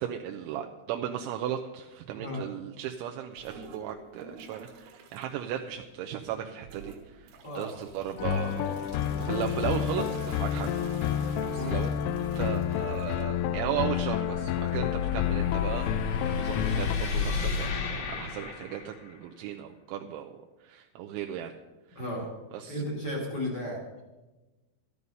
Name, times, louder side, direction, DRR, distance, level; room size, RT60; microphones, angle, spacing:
voice 1, 0.0-7.3 7.5-8.9 9.2-10.7 11.5-11.9 12.4-15.9 16.2-17.7 18.1-20.3 20.6-21.5 22.5-22.8, right 10 dB, 80° right, 3 dB, 2.9 m, -36 dB
sound 1, 3.3-5.3 5.7-6.2 6.6-19.3, right 5 dB, 65° right, 3.0 m, -51 dB
sound 2, 7.8-19.2, left 5 dB, 60° left, 3.2 m, -35 dB
sound 3, 8.2-17.0, left 10 dB, 85° left, 3.1 m, -30 dB
voice 2, 11.5-11.9 21.9-22.3 22.7-23.8, left 1 dB, 35° left, -2 dB, 1.8 m, -34 dB
13.0 x 12.5 x 5.4 m, 1.1 s
omnidirectional pair, 5.5 m